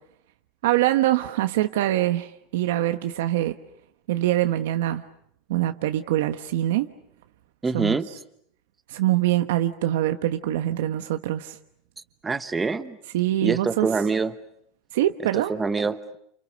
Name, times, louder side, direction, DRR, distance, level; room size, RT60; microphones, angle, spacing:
voice 1, 0.6-3.5 4.1-5.0 5.5-6.9 7.7-8.0 8.9-11.6 13.1-13.9 14.9-15.5, right 14 dB, 80° right, 8 dB, 1.2 m, -24 dB
voice 2, 7.6-8.1 12.2-13.0 13.4-14.4 15.5-16.2, right 4 dB, 10° right, 11 dB, 1.1 m, -25 dB
30.0 x 28.5 x 6.5 m, 0.70 s
supercardioid pair, 165°, 0 cm